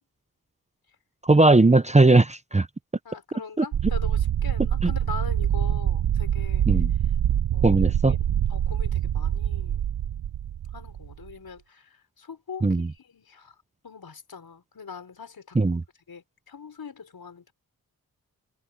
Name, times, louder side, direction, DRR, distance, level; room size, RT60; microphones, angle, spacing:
voice 1, 1.2-2.7 3.6-3.7 6.7-6.9 7.6-8.1 12.6-12.9 15.5-15.8, right 2 dB, 20° right, 0.8 m, -18 dB
voice 2, 3.1-6.7 7.5-7.8 8.1-8.2 8.5-9.9 10.7-13.6 13.8-15.8 16.1-17.5, left 6 dB, 70° left, 5.3 m, -42 dB
sound 1, 3.7-11.3, right 10 dB, 90° right, 0.8 m, -25 dB
cardioid pair, 65°, 37 cm